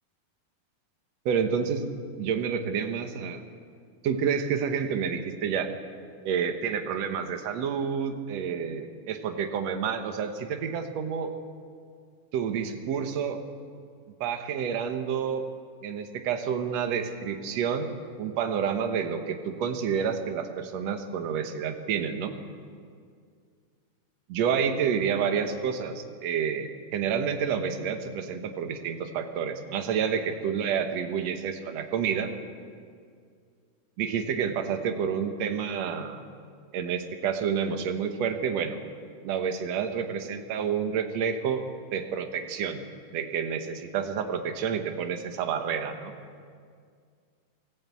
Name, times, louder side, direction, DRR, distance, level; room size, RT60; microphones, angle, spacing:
voice 1, 1.3-1.8 2.2-3.4 4.0-5.7 6.3-11.3 12.3-13.4 14.2-15.5 15.8-17.9 18.2-22.3 24.3-32.3 34.0-36.2 36.7-38.8 39.2-41.6 41.9-42.8 43.1-46.1, right 7 dB, 60° right, 6 dB, 2.1 m, -29 dB
23.0 x 15.0 x 8.4 m, 2.2 s
omnidirectional pair, 4.0 m